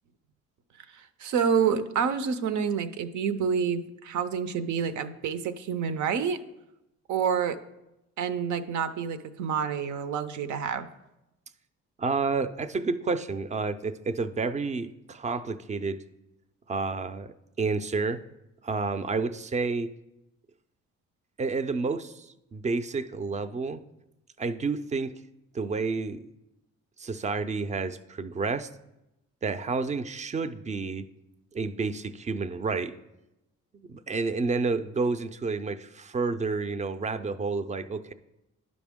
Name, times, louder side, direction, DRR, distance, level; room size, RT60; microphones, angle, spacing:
voice 1, 0.9-6.4 7.1-7.6 8.2-10.9, right 7 dB, 75° right, 11 dB, 0.6 m, -28 dB
voice 2, 12.0-16.0 16.7-18.2 18.6-19.9 21.4-23.8 24.4-25.1 25.5-26.3 27.0-28.7 29.4-31.0 31.5-32.9 33.8-38.1, right 4 dB, 25° right, 11 dB, 0.4 m, -30 dB
11.0 x 5.1 x 3.6 m, 0.92 s
cardioid pair, 90°, 30 cm